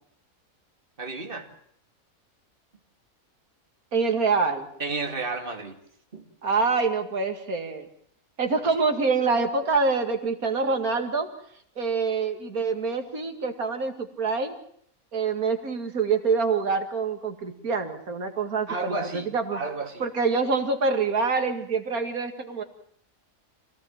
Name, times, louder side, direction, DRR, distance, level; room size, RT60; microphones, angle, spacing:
voice 1, 1.0-1.5 4.8-5.8 6.1-6.3 18.7-20.0, right 3 dB, 40° right, 4 dB, 2.6 m, -32 dB
voice 2, 3.9-4.7 6.4-7.9 8.4-11.3 11.8-14.5 15.1-19.6 20.0-22.6, right 4 dB, 80° right, 5 dB, 2.7 m, -26 dB
26.0 x 17.5 x 7.3 m, 0.65 s
omnidirectional pair, 1.5 m